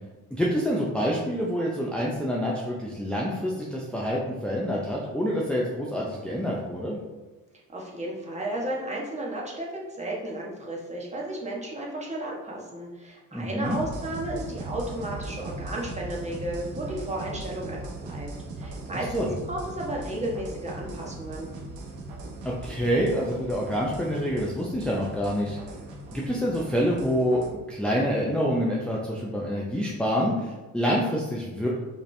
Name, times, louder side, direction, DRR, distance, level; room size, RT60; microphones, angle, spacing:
voice 1, 0.3-7.0 13.3-13.8 19.1-19.3 22.4-25.6 26.1-31.7, equal, 5° left, -5 dB, 0.6 m, -27 dB
voice 2, 7.7-18.3 18.6-21.5, right 1 dB, 20° right, -3 dB, 1.3 m, -33 dB
sound 1, 13.6-27.5, right 2 dB, 85° right, 1.0 m, -39 dB
4.9 x 3.3 x 3.3 m, 1.2 s
cardioid pair, 90°, 30 cm